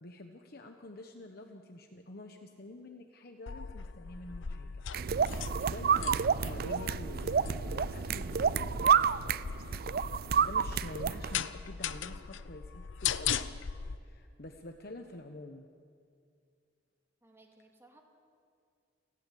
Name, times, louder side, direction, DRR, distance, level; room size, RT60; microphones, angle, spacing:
voice 1, 0.0-4.8 5.5-9.5 10.4-13.4 14.0-15.7, left 1 dB, 55° left, 4 dB, 1.1 m, -47 dB
sound 1, 3.5-14.0, left 7 dB, 80° left, 0.7 m, -39 dB
sound 2, 4.9-11.4, right 7 dB, 50° right, 0.4 m, -29 dB
voice 2, 17.2-18.0, right 2 dB, 15° right, 1 dB, 2.5 m, -62 dB
29.5 x 11.5 x 8.6 m, 2.3 s
head